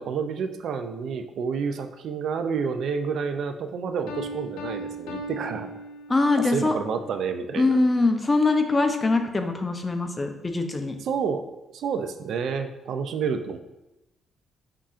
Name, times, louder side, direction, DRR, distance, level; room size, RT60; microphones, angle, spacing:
voice 1, 0.0-5.7 6.4-7.8 11.0-11.4 11.7-13.6, right 6 dB, 70° right, 7 dB, 0.4 m, -29 dB
Piano, 4.1-6.5, right 1 dB, 85° left, 0.7 m, -37 dB
voice 2, 6.1-6.8 7.6-11.0, left 3 dB, 25° left, 6 dB, 0.5 m, -23 dB
5.5 x 3.6 x 2.4 m, 0.95 s
cardioid pair, 90°, 0 cm